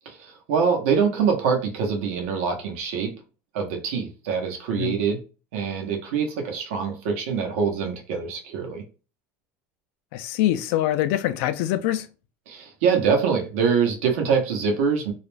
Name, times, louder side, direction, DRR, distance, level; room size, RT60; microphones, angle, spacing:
voice 1, 0.1-3.1 3.5-5.2 5.5-8.8 12.5-15.1, right 6 dB, 80° right, 0.8 m, -24 dB
voice 2, 10.1-12.1, left 13 dB, 70° left, 0.3 m, -24 dB
2.4 x 2.1 x 3.2 m
supercardioid pair, 135°, 7 cm